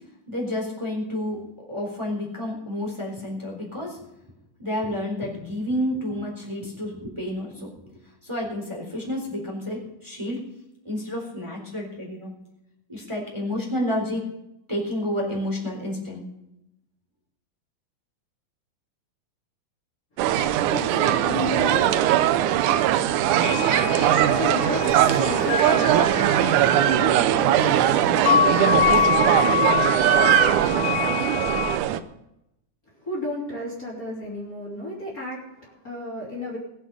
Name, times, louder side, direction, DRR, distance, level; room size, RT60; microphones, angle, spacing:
voice 1, 0.3-1.4 1.7-4.0 4.6-10.4 10.8-12.3 12.9-14.3 14.7-16.3, left 1 dB, 10° right, -2 dB, 3.7 m, -30 dB
sound 1, 20.2-32.0, right 11 dB, 85° right, 2.2 m, -20 dB
voice 2, 20.3-22.0 24.2-29.5 33.0-36.6, left 2 dB, 30° left, -5 dB, 3.4 m, -33 dB
sound 2, 23.3-31.8, left 7 dB, 50° left, 1.3 m, -26 dB
20.5 x 8.3 x 5.4 m, 0.85 s
omnidirectional pair, 3.5 m